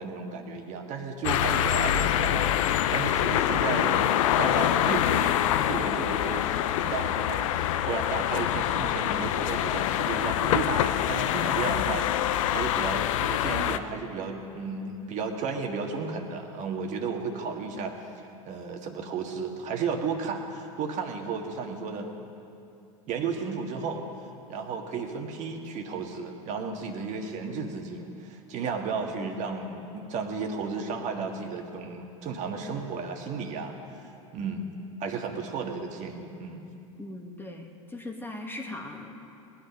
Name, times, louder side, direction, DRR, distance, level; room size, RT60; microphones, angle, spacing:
voice 1, 0.0-7.5 7.9-17.9 18.5-22.1 23.1-24.0 24.5-33.7 34.3-34.7 35.0-36.6, right 5 dB, 45° right, 3 dB, 1.8 m, -33 dB
sound 1, 1.2-13.8, left 11 dB, 70° left, 0.6 m, -25 dB
voice 2, 37.0-39.3, left 2 dB, 10° left, 2 dB, 1.5 m, -39 dB
19.5 x 10.5 x 5.4 m, 2.7 s
hypercardioid pair, 95°, 18 cm